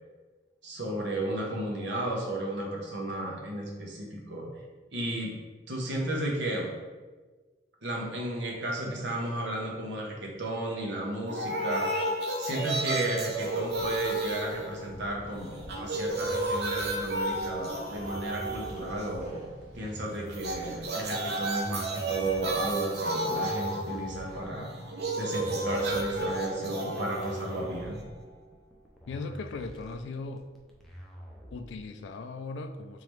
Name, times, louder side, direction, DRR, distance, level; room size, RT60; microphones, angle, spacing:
voice 1, 0.6-4.5 4.9-5.3 5.7-6.7 7.8-12.0 12.4-24.7 25.2-28.0, right 1 dB, 75° right, -1 dB, 0.9 m, -33 dB
sound 1, 11.3-15.2 15.5-19.3 20.3-28.3, right 1 dB, 60° right, 0.5 m, -33 dB
sound 2, 13.3-21.2, equal, 40° left, 1.0 m, -51 dB
sound 3, 16.2-32.0, equal, ahead, 0.4 m, -47 dB
voice 2, 29.1-30.5 31.5-33.0, left 3 dB, 75° left, 8 dB, 0.3 m, -38 dB
3.8 x 3.2 x 3.1 m, 1.3 s
head